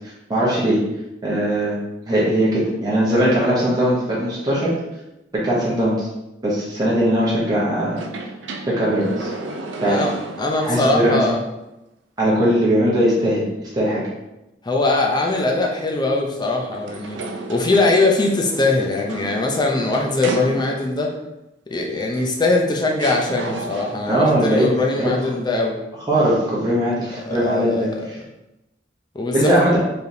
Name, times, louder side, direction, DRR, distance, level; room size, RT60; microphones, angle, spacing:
voice 1, 0.3-0.8 1.2-1.8 2.1-4.7 5.3-6.1 6.4-8.0 8.7-9.3 9.8-10.0 10.6-11.2 12.2-13.4 13.7-14.0 24.1-24.7 25.0-25.1 26.1-28.1 29.3-29.8, right 1 dB, 20° right, -7 dB, 1.0 m, -19 dB
sound 1, 7.9-10.8 11.3-11.4 16.7-21.1 22.2-22.3 23.0-24.2, right 3 dB, 80° right, 0.5 m, -33 dB
voice 2, 10.4-11.4 14.6-17.2 17.5-21.1 21.7-25.8 27.2-28.0 29.1-29.6, left 2 dB, 25° left, 0 dB, 0.6 m, -21 dB
4.4 x 3.4 x 2.7 m, 0.93 s
head